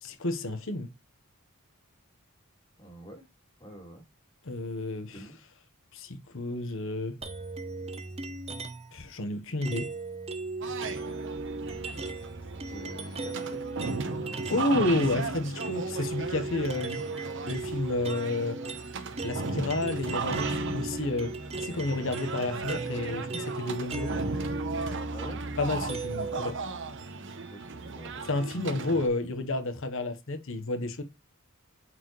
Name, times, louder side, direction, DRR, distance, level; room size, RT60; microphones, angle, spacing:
voice 1, 0.0-0.9 4.4-5.2 5.9-7.2 8.9-9.9 14.5-17.0 17.5-18.6 19.2-21.3 21.6-24.1 25.6-26.5 28.3-31.0, left 2 dB, 65° left, 1.2 m, -30 dB
voice 2, 2.8-3.2 3.6-4.0 5.1-5.5 12.7-14.7 25.1-25.4 27.3-28.3 28.6-28.7, equal, 25° left, 2.9 m, -47 dB
sound 1, 7.2-9.0 9.6-14.7 15.0-26.4, right 3 dB, 30° right, 0.9 m, -37 dB
sound 2, 10.6-29.1, right 4 dB, 55° right, 1.1 m, -37 dB
8.7 x 4.5 x 3.1 m
head